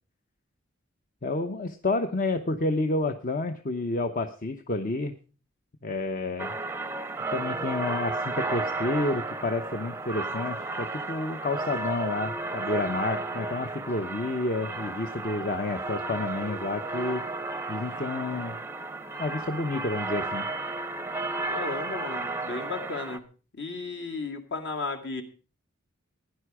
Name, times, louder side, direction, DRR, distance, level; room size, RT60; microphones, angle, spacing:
voice 1, 1.2-5.1 5.8-6.5 7.3-17.2 17.7-18.6 19.2-20.5, left 2 dB, 40° left, 7 dB, 0.8 m, -30 dB
sound 1, 6.4-23.2, right 2 dB, 10° right, 0.6 m, -33 dB
voice 2, 21.5-23.2 23.6-25.2, left 3 dB, 60° left, 5 dB, 2.1 m, -34 dB
16.0 x 10.5 x 4.8 m, 0.38 s
head